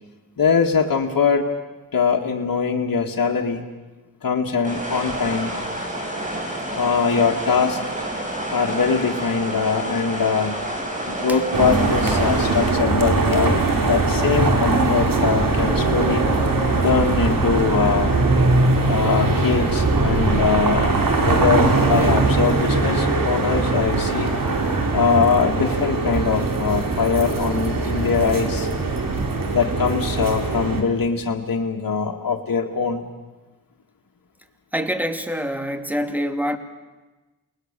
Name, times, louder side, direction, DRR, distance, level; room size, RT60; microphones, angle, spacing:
voice 1, 0.4-1.5 1.9-3.6 4.2-5.5 6.8-7.8 8.5-10.6 11.1-16.2 16.8-18.2 18.8-20.9 21.2-24.3 24.9-28.7 29.5-33.1, left 5 dB, 70° left, 1 dB, 2.0 m, -22 dB
sound 1, 4.6-12.7, right 1 dB, 20° right, 7.4 m, -29 dB
sound 2, 11.5-30.8, right 3 dB, 70° right, 3.5 m, -21 dB
voice 2, 34.7-36.6, equal, 5° right, 6 dB, 2.6 m, -25 dB
29.0 x 20.5 x 6.8 m, 1.2 s
cardioid pair, 50°, 35 cm